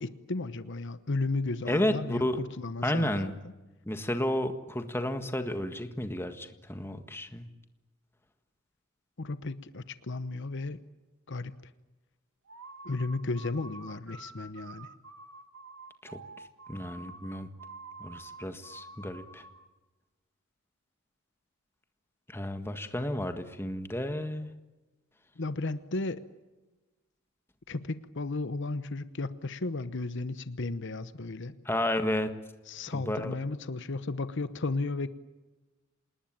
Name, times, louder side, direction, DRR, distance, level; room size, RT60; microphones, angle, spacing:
voice 1, 0.0-3.3 9.2-10.8 11.3-11.6 12.8-14.9 25.4-26.2 27.7-31.5 32.7-35.1, left 3 dB, 60° left, 13 dB, 0.9 m, -34 dB
voice 2, 1.7-2.4 2.8-3.3 3.9-7.4 16.0-16.2 16.7-17.5 18.0-19.4 22.3-24.5 31.6-32.3 32.9-33.3, left 1 dB, 10° left, 8 dB, 1.6 m, -32 dB
sound 1, 12.5-19.7, right 3 dB, 70° right, 2.1 m, -48 dB
27.5 x 20.0 x 8.9 m, 1.1 s
head